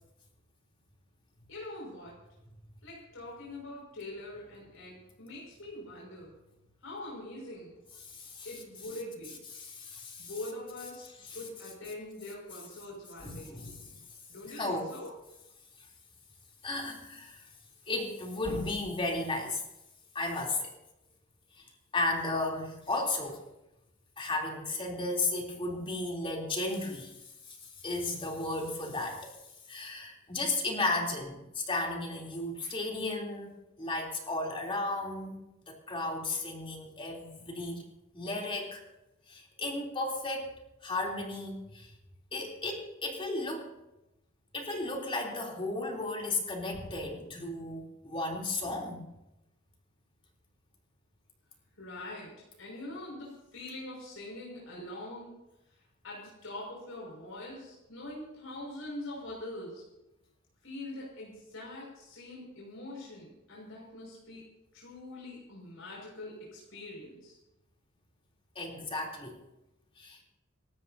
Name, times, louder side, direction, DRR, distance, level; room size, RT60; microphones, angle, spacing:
voice 1, 1.5-2.2 2.8-6.3 6.8-7.8 8.4-9.4 10.2-13.6 14.3-15.1 51.8-52.3 52.6-55.3 56.0-59.8 60.6-64.4 64.7-67.4, left 1 dB, 90° left, -4 dB, 6.1 m, -43 dB
voice 2, 8.0-8.5 9.5-10.3 11.2-11.4 13.2-13.8 14.5-14.9 16.6-17.4 17.9-19.6 20.2-20.7 21.6-21.7 21.9-23.4 24.2-27.1 27.5-29.4 29.7-37.8 38.1-38.8 39.3-40.5 40.8-41.9 42.3-43.7 44.5-49.0 68.6-69.4 70.0-70.2, left 2 dB, 25° left, -1 dB, 3.4 m, -34 dB
28.0 x 13.0 x 2.8 m, 0.92 s
head